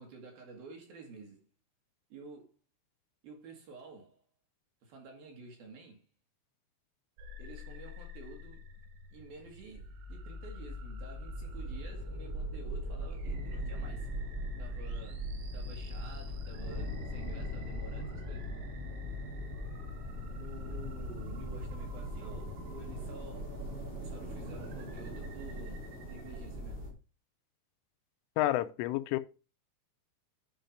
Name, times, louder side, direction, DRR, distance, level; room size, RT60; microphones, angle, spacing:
voice 1, 0.0-1.5 2.1-2.6 3.2-4.2 4.8-6.0 7.4-8.6 9.1-14.1 14.6-18.5 20.3-23.5 24.0-26.8, right 3 dB, 55° right, 3.2 m, -50 dB
sound 1, 7.2-26.5, left 5 dB, 80° right, 4.0 m, -46 dB
sound 2, 9.6-26.9, right 1 dB, 40° right, 0.8 m, -41 dB
voice 2, 28.4-29.2, left 15 dB, 85° left, 3.1 m, -29 dB
10.5 x 4.9 x 5.2 m
omnidirectional pair, 5.7 m